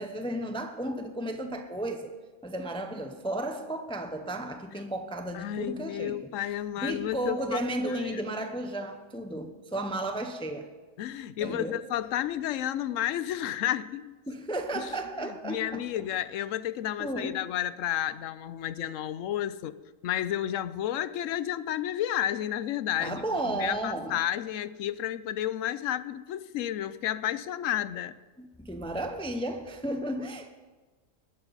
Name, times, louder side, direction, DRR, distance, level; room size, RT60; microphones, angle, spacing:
voice 1, 0.0-2.1 2.4-6.3 6.8-10.7 11.4-11.8 14.3-15.9 17.0-17.4 23.0-24.2 28.4-30.5, right 1 dB, 5° left, 0.7 m, -33 dB
voice 2, 5.3-7.6 7.9-8.2 11.0-14.1 14.7-14.9 15.2-19.8 20.0-28.1, left 11 dB, 85° left, 1.0 m, -31 dB
20.0 x 11.5 x 4.0 m
omnidirectional pair, 1.3 m